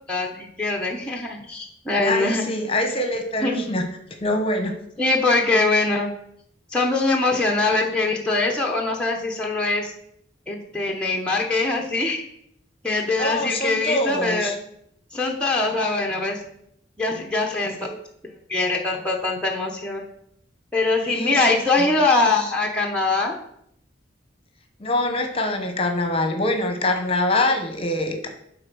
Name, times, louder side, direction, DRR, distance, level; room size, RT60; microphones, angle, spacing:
voice 1, 0.1-2.5 3.4-3.6 5.0-6.1 6.7-9.9 10.5-12.2 12.8-14.5 15.1-16.4 17.0-17.8 18.5-20.0 20.7-23.3, left 3 dB, 5° left, -1 dB, 0.9 m, -22 dB
voice 2, 2.0-3.9 4.2-4.8 13.2-14.5 17.8-17.9 21.1-21.4 21.8-21.9 24.8-28.3, left 1 dB, 30° left, 5 dB, 1.0 m, -24 dB
8.8 x 3.9 x 6.1 m, 0.72 s
head